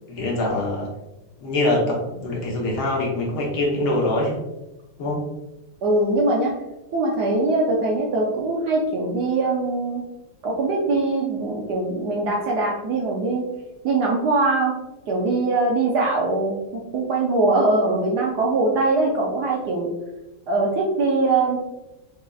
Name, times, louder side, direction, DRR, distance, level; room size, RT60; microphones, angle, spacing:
voice 1, 0.1-0.9 1.4-4.4 5.0-5.2, left 2 dB, 75° left, -3 dB, 1.9 m, -24 dB
voice 2, 5.8-6.5 6.9-10.0 10.4-13.4 13.8-14.7 15.1-16.6 16.9-19.9 20.5-21.6, right 2 dB, 65° right, -2 dB, 1.0 m, -22 dB
6.5 x 3.3 x 2.3 m, 1.0 s
omnidirectional pair, 2.3 m